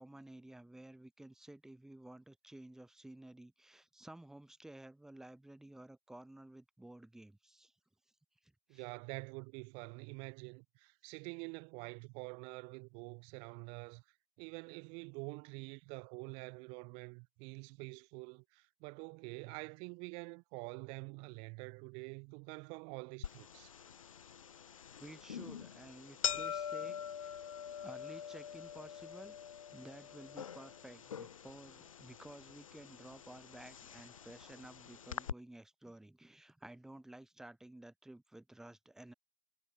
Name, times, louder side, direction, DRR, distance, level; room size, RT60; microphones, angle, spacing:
voice 1, 0.0-7.7 8.4-8.9 25.0-27.4 27.8-29.4 29.7-39.1, right 1 dB, 5° right, 3.2 m, -54 dB
voice 2, 8.7-14.0 14.4-23.7, right 35 dB, 30° right, 1.3 m, -47 dB
sound 1, 23.2-35.3, left 8 dB, 75° left, 1.5 m, -44 dB
hypercardioid pair, 130°, 17 cm